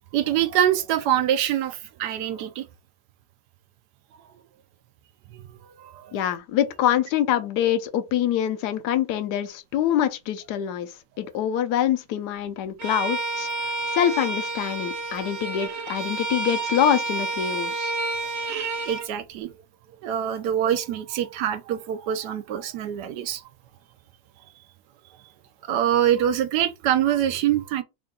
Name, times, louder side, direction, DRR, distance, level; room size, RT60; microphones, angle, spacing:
voice 1, 0.1-2.7 5.3-5.4 5.8-6.1 15.1-15.3 18.0-18.1 18.8-19.5 20.0-23.4 25.6-27.8, right 10 dB, 80° right, 1.2 m, -24 dB
voice 2, 6.1-13.5 13.9-17.9, left 10 dB, 80° left, 1.2 m, -25 dB
Bowed string instrument, 12.8-19.1, right 3 dB, 55° right, 0.7 m, -29 dB
3.7 x 2.4 x 3.7 m
omnidirectional pair, 1.8 m